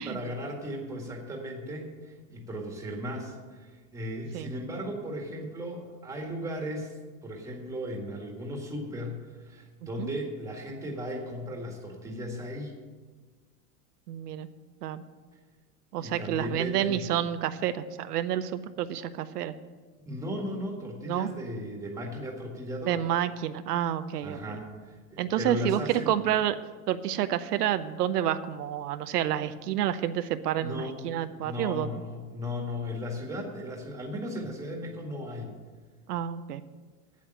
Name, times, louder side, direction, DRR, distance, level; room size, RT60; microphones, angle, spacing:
voice 1, 0.0-7.0 7.2-12.7 16.0-17.1 20.0-23.1 24.2-26.1 30.6-31.0 31.3-35.5, equal, 5° right, 1 dB, 1.7 m, -36 dB
voice 2, 14.1-14.5 14.8-15.0 15.9-19.5 21.1-21.3 22.9-24.4 25.2-26.6 26.9-32.0 36.1-36.6, right 11 dB, 85° right, 11 dB, 0.8 m, -29 dB
8.5 x 8.5 x 9.0 m, 1.4 s
supercardioid pair, 155°, 46 cm